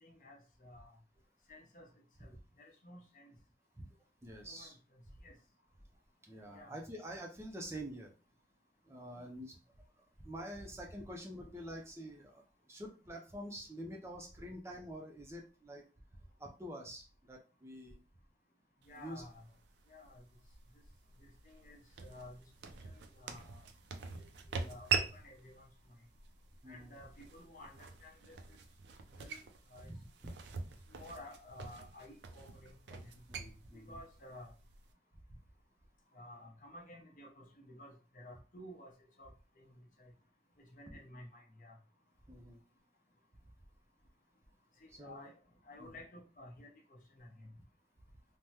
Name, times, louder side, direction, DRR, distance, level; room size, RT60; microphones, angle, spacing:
voice 1, 0.0-0.9 1.5-1.9 2.2-3.3 4.4-5.3 6.5-6.7 9.1-9.2 18.9-19.5 19.9-20.2 21.2-23.7 24.1-25.7 26.7-28.6 29.1-29.4 29.7-29.9 30.9-33.2 33.7-34.5 36.1-39.3 39.6-40.1 40.6-41.8 44.8-45.4 45.6-47.5, left 1 dB, 45° left, 0 dB, 0.7 m, -54 dB
voice 2, 4.2-4.8 6.2-8.1 8.8-9.6 10.0-15.8 16.4-18.0 18.9-19.2 26.6-26.9 29.8-30.0 30.7-30.8 33.3-34.0 35.3-35.4 40.9-41.0 42.3-42.6 44.9-45.3 45.8-46.0, equal, 15° right, 0 dB, 0.4 m, -47 dB
sound 1, 18.8-34.9, right 5 dB, 80° right, 0.4 m, -44 dB
3.4 x 2.0 x 2.8 m, 0.35 s
head